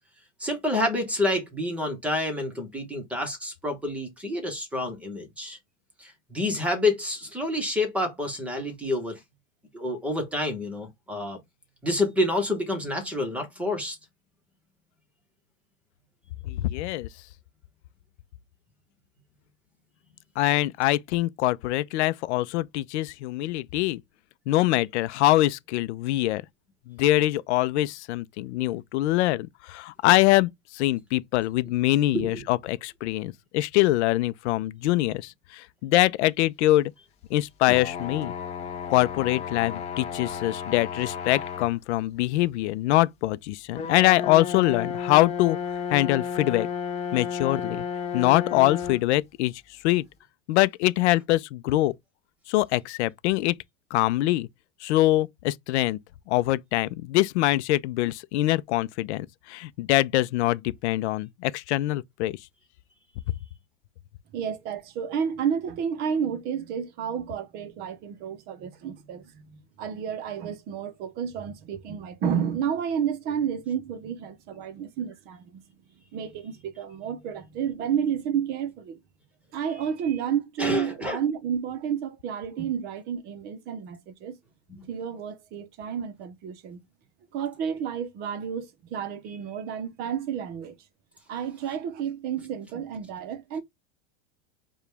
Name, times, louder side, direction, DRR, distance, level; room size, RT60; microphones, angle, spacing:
voice 1, 0.4-5.6 6.0-9.2 9.7-11.4 11.8-14.0 32.1-32.4 80.6-81.2 84.8-84.9, left 1 dB, 5° right, 0.9 m, -28 dB
voice 2, 16.4-17.1 20.4-24.0 24.5-26.4 26.9-36.9 37.3-38.3 38.9-45.6 45.9-46.7 47.1-47.8 48.1-50.1 50.5-51.9 52.5-53.6 53.9-54.5 54.8-56.0 56.3-62.4 63.3-63.4, left 16 dB, 70° left, 0.5 m, -24 dB
sound 1, 37.7-41.8 42.4-42.5 43.7-49.0, left 7 dB, 20° left, 0.6 m, -33 dB
voice 3, 64.3-75.6 76.1-79.0 79.5-84.4 84.9-86.8 87.3-90.8 91.3-93.6, right 8 dB, 30° right, 0.6 m, -31 dB
4.8 x 2.3 x 3.3 m
supercardioid pair, 160°, 35 cm